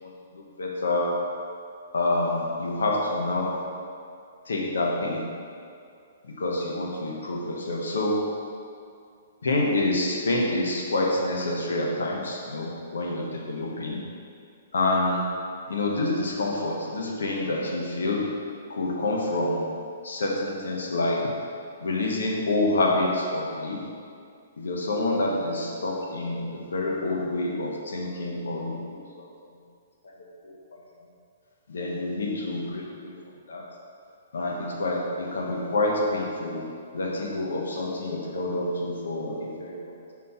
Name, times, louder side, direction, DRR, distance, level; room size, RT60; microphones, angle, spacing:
voice 1, 0.6-1.2 1.9-3.6 4.5-5.2 6.4-8.2 9.4-14.0 14.7-15.2 15.7-18.4 18.7-19.7 20.0-21.3 21.8-23.8 24.6-29.0 30.5-30.6 31.7-33.1 33.5-33.6 34.3-36.6 36.9-40.1, left 2 dB, 85° left, -1 dB, 1.0 m, -27 dB
5.3 x 4.2 x 4.3 m, 2.4 s
hypercardioid pair, 150°, 0 cm